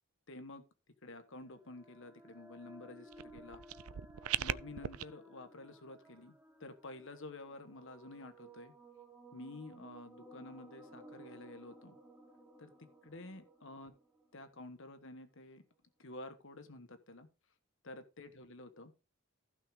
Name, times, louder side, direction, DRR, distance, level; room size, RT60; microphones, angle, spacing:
voice 1, 0.3-0.6 1.0-3.6 4.4-6.3 6.6-8.7 9.3-12.0 12.6-13.9 14.3-15.6 16.0-17.3 17.8-18.9, left 2 dB, 55° left, 9 dB, 1.3 m, -50 dB
sound 1, 1.3-15.0, right 1 dB, 5° right, 1.8 m, -58 dB
sound 2, 3.1-5.0, right 11 dB, 75° right, 0.5 m, -39 dB
15.5 x 6.1 x 3.6 m, 0.28 s
head